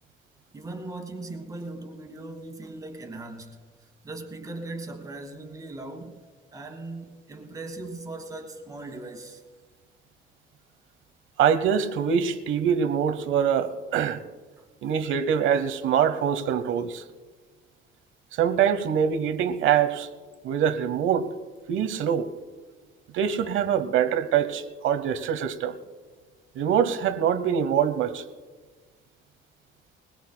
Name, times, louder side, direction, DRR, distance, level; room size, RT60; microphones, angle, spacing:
voice 1, 0.5-3.6 4.0-6.2 6.5-9.4 14.6-14.7, right 2 dB, 15° right, 1.5 m, -39 dB
voice 2, 11.4-14.2 14.8-17.0 18.4-20.1 20.4-21.3 21.7-22.3 23.1-25.8 26.6-28.2, right 8 dB, 70° right, 0.9 m, -24 dB
21.0 x 21.0 x 2.2 m
cardioid pair, 180°, 21 cm